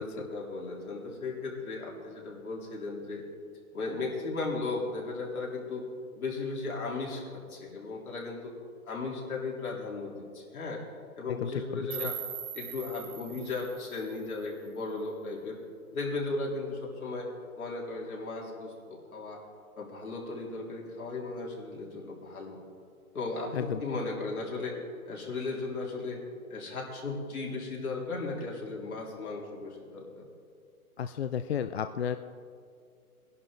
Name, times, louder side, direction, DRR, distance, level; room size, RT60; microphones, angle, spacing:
voice 1, 0.0-3.2 3.7-5.9 6.1-8.5 8.9-10.8 11.2-12.2 12.5-15.6 15.9-17.3 17.6-19.4 19.8-22.6 23.1-24.8 25.1-26.2 26.5-30.3, left 3 dB, 75° left, -3 dB, 3.6 m, -36 dB
voice 2, 11.3-12.1 23.5-23.8 31.0-32.2, left 8 dB, 50° left, 10 dB, 0.4 m, -33 dB
sound 1, 11.9-14.9, right 9 dB, 40° right, 1.8 m, -41 dB
20.0 x 11.0 x 3.8 m, 2.2 s
hypercardioid pair, 155°, 43 cm